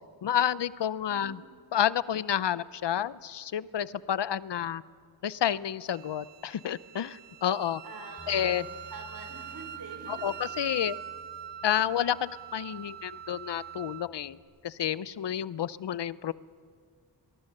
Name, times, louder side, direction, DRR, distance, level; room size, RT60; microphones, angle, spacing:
voice 1, 0.2-1.4 1.7-4.8 5.2-7.8 8.3-8.6 10.1-11.0 11.6-14.4 14.6-16.3, left 10 dB, 75° left, 18 dB, 0.6 m, -30 dB
voice 2, 1.0-1.3 7.8-10.3, right 3 dB, 55° right, 3 dB, 5.3 m, -46 dB
Wind instrument woodwind instrument, 5.9-14.1, right 10 dB, 85° right, 0.8 m, -44 dB
Bass guitar, 8.2-14.4, right 3 dB, 5° right, 6.0 m, -55 dB
22.5 x 22.0 x 6.7 m, 2.1 s
wide cardioid pair, 100°, 42 cm